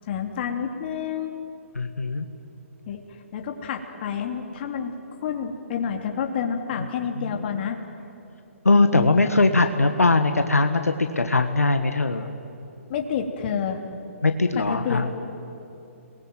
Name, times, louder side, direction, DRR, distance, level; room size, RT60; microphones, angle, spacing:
voice 1, 0.1-1.4 2.9-3.0 3.3-4.9 5.2-7.8 12.9-13.8 14.5-15.1, left 7 dB, 40° left, 4 dB, 3.1 m, -29 dB
voice 2, 1.7-2.3 7.2-7.5 8.6-12.3 14.2-15.1, left 3 dB, 90° left, 7 dB, 1.5 m, -21 dB
29.5 x 21.0 x 9.4 m, 2.9 s
figure-of-eight pair, 135°, 8 cm